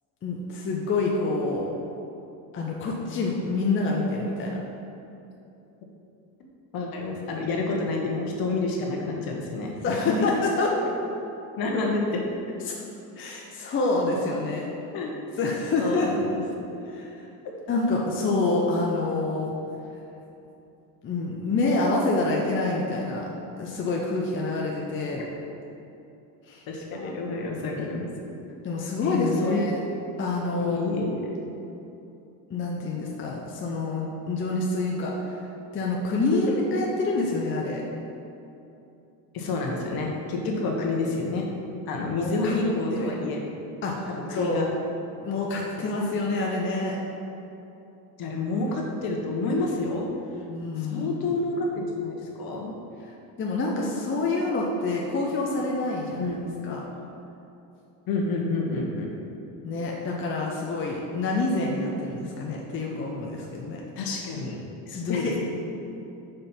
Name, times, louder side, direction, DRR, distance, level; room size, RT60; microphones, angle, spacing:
voice 1, 0.2-1.7 2.5-4.6 9.8-10.7 12.6-12.8 13.2-14.7 15.4-16.2 16.9-17.3 17.7-19.5 21.0-23.3 23.6-25.2 26.5-26.6 26.9-27.1 28.6-29.8 30.2-30.9 32.5-35.4 35.7-37.8 42.1-42.5 42.9-43.2 43.8-44.7 45.2-47.0 50.5-51.4 53.1-56.3 56.6-56.8 59.6-63.8 64.9-65.4, left 3 dB, 30° left, -2 dB, 0.7 m, -27 dB
voice 2, 6.7-9.7 10.0-10.1 11.6-12.2 14.9-15.2 15.8-16.8 26.7-28.4 29.0-29.6 30.6-31.3 36.3-36.6 36.8-36.9 39.3-41.4 41.9-43.4 44.1-44.7 48.2-50.1 50.8-52.7 56.2-56.4 58.1-59.1 64.0-64.6 64.9-65.4, left 3 dB, 50° left, 0 dB, 1.3 m, -29 dB
5.1 x 4.2 x 5.7 m, 2.8 s
supercardioid pair, 110°, 44 cm